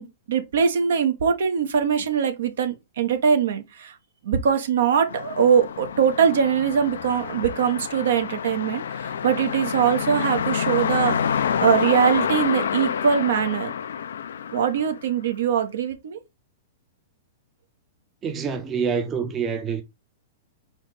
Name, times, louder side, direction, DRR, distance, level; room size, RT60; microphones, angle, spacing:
voice 1, 0.0-3.9 4.2-13.7 14.5-16.2, right 7 dB, 70° right, 1.1 m, -22 dB
sound 1, 5.1-15.3, left 8 dB, 70° left, 0.4 m, -28 dB
voice 2, 18.2-19.8, right 6 dB, 25° right, 0.8 m, -26 dB
4.3 x 3.1 x 3.9 m
hypercardioid pair, 105°, 0 cm